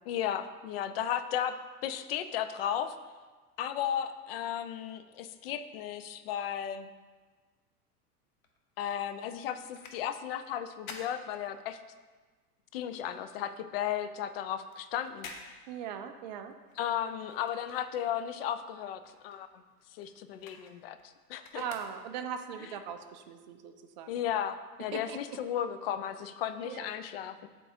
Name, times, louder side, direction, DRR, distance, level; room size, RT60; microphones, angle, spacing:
voice 1, 0.1-1.5 1.8-3.0 3.6-6.9 8.8-11.8 12.7-15.3 16.8-19.6 19.9-21.6 24.1-27.5, left 9 dB, 40° left, 11 dB, 0.4 m, -35 dB
sound 1, 8.3-12.1 12.4-18.4 18.7-22.5 23.0-23.1, left 4 dB, 60° left, 1.0 m, -51 dB
voice 2, 15.7-16.5 21.5-24.1 24.9-25.4 26.6-27.0, right 8 dB, 35° right, 7 dB, 0.4 m, -40 dB
11.0 x 3.8 x 2.7 m, 1.4 s
figure-of-eight pair, 90°, 46 cm